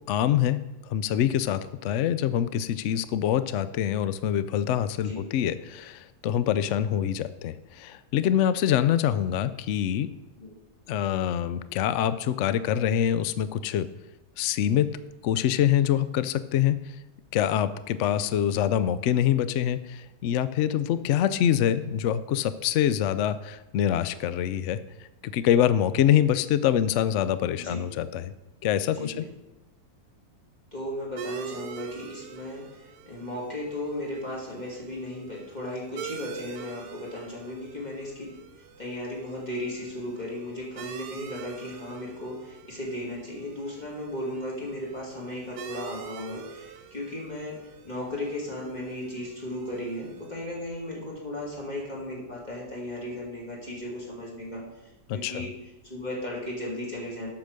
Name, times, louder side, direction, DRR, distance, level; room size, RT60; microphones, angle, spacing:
voice 1, 0.1-10.1 10.9-13.9 14.4-14.9 15.2-16.8 17.3-24.8 25.2-28.3 28.6-29.2 55.1-55.4, left 10 dB, 75° left, 14 dB, 0.6 m, -25 dB
voice 2, 28.9-29.3 30.7-38.3 38.6-55.6 55.9-57.3, left 1 dB, 25° left, -4 dB, 2.6 m, -36 dB
sound 1, 31.2-50.3, right 8 dB, 85° right, 1.3 m, -44 dB
8.3 x 6.1 x 6.5 m, 1.0 s
omnidirectional pair, 1.7 m